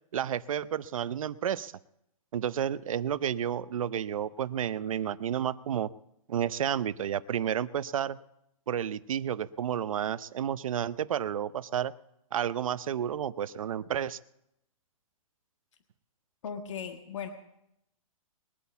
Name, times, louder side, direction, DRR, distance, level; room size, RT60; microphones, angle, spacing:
voice 1, 0.1-1.7 2.3-5.9 6.3-8.2 8.7-11.9 12.3-14.2, right 9 dB, 70° right, 16 dB, 0.6 m, -31 dB
voice 2, 16.4-17.3, left 7 dB, 60° left, 5 dB, 1.6 m, -37 dB
21.5 x 8.5 x 7.0 m, 0.81 s
hypercardioid pair, 175°, 18 cm